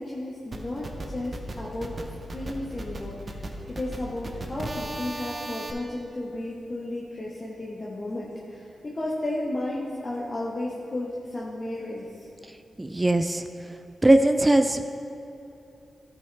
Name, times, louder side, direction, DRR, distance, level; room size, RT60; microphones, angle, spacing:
voice 1, 0.0-2.0 2.3-12.3, left 1 dB, 40° left, -5 dB, 1.2 m, -33 dB
sound 1, 0.5-5.7, right 1 dB, 45° right, 0.8 m, -36 dB
voice 2, 12.8-13.4 14.0-15.0, right 1 dB, 20° right, 8 dB, 0.3 m, -20 dB
12.5 x 5.4 x 3.4 m, 2.9 s
cardioid pair, 60°, 0 cm